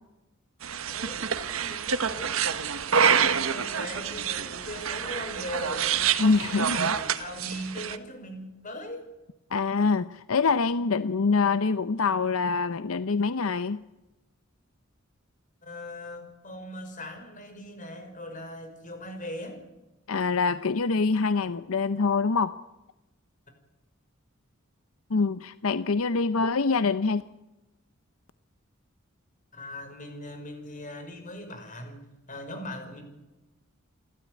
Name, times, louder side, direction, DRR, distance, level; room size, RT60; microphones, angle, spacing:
sound 1, 0.6-8.0, right 7 dB, 75° right, 1.2 m, -27 dB
voice 1, 0.9-1.3 1.6-6.1 6.4-9.1 15.6-19.6 29.5-32.0 32.3-33.0, left 1 dB, 40° left, 6 dB, 5.8 m, -40 dB
voice 2, 6.2-6.9 9.5-13.8 20.1-22.6 25.1-27.2, left 4 dB, 80° left, 13 dB, 0.7 m, -25 dB
28.5 x 13.0 x 9.5 m, 1.0 s
head